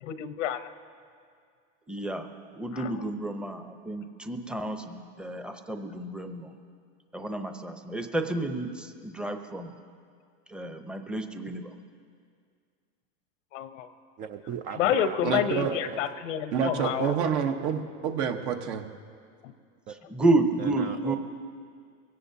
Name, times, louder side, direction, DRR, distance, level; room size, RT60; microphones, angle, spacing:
voice 1, 0.0-0.7 2.7-2.9 13.5-13.9 14.8-17.2 19.4-19.5, left 9 dB, 80° left, 11 dB, 0.9 m, -29 dB
voice 2, 1.9-2.3 2.5-6.5 7.1-9.7 10.5-11.7 20.1-21.2, right 2 dB, 5° right, 6 dB, 0.7 m, -30 dB
voice 3, 14.2-15.2 15.7-16.0 19.9-20.0 20.6-21.2, right 7 dB, 25° right, 7 dB, 0.4 m, -37 dB
voice 4, 15.2-15.7 16.5-18.8, right 7 dB, 60° right, 4 dB, 1.2 m, -28 dB
23.0 x 17.0 x 2.8 m, 2.2 s
supercardioid pair, 130°, 37 cm